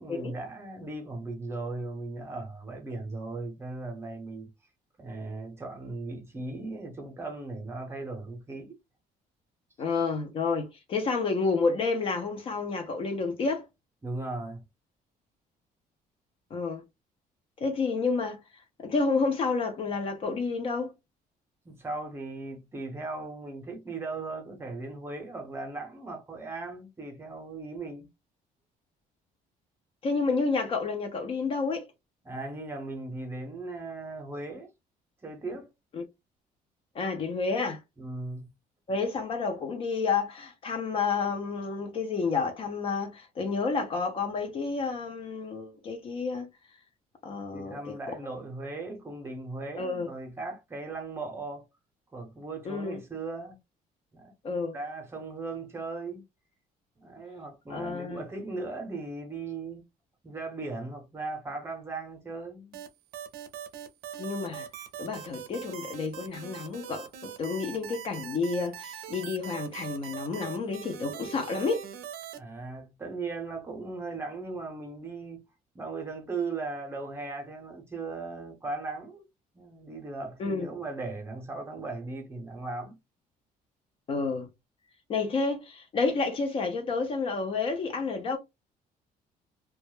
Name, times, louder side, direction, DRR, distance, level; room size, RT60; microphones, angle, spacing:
voice 1, 0.0-4.5 5.0-8.8 14.0-14.6 21.6-28.1 32.2-34.7 35.2-35.7 38.0-38.5 47.5-51.7 52.1-53.6 54.1-54.3 54.7-56.2 57.0-59.8 60.2-62.8 72.4-75.4 75.7-79.2 79.5-83.0, right 3 dB, 15° right, 0.6 m, -38 dB
voice 2, 9.8-13.7 16.5-16.8 17.6-20.9 30.0-31.9 35.9-36.0 36.9-37.8 38.9-46.5 47.2-48.0 49.8-50.1 52.6-53.0 54.4-54.7 57.7-58.2 64.2-64.7 65.0-71.8 80.4-80.7 84.1-84.5 85.1-88.4, left 4 dB, 35° left, 0.4 m, -30 dB
sound 1, 62.7-72.4, right 9 dB, 85° right, 0.5 m, -41 dB
2.2 x 2.0 x 3.0 m
cardioid pair, 170°, 15 cm